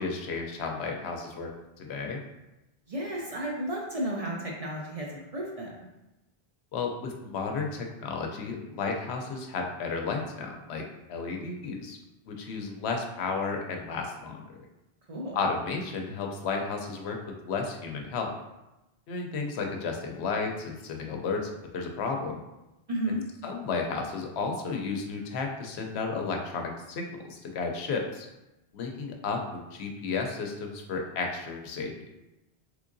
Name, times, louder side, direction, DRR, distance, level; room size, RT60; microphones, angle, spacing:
voice 1, 0.0-1.5 1.8-2.2 6.7-12.0 12.3-14.4 15.3-18.3 19.1-22.4 23.1-23.2 23.4-28.3 28.7-31.9, left 4 dB, 85° left, 2 dB, 0.9 m, -33 dB
voice 2, 2.9-5.7 15.1-15.4 22.9-23.2, equal, 45° right, -2 dB, 0.5 m, -33 dB
3.6 x 3.2 x 2.5 m, 0.97 s
omnidirectional pair, 1.1 m